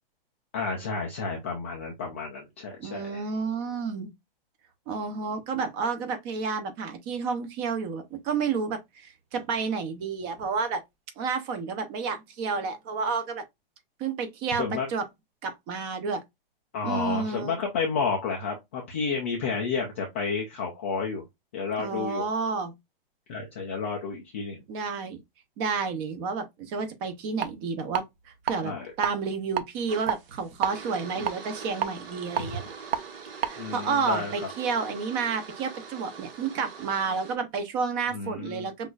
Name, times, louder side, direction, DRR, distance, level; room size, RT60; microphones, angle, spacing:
voice 1, 0.5-3.3 14.5-14.9 16.7-21.2 21.5-22.3 23.3-24.6 28.5-28.9 32.4-32.5 33.6-34.5 38.1-38.7, left 5 dB, 15° left, 0.3 m, -31 dB
voice 2, 2.8-4.1 4.9-10.8 11.2-13.4 14.0-15.1 15.4-16.2 16.8-17.6 21.8-22.8 24.7-25.2 25.6-28.0 28.4-32.6 33.5-38.9, right 5 dB, 25° right, 0.7 m, -30 dB
sound 1, 27.4-27.5 27.9-28.5 28.9-29.1 29.5-30.7 31.2-33.0 33.4-33.5, right 9 dB, 90° right, 0.9 m, -29 dB
sound 2, 29.9-37.4, right 5 dB, 65° right, 1.6 m, -43 dB
6.0 x 2.6 x 2.3 m
hypercardioid pair, 160°, 29 cm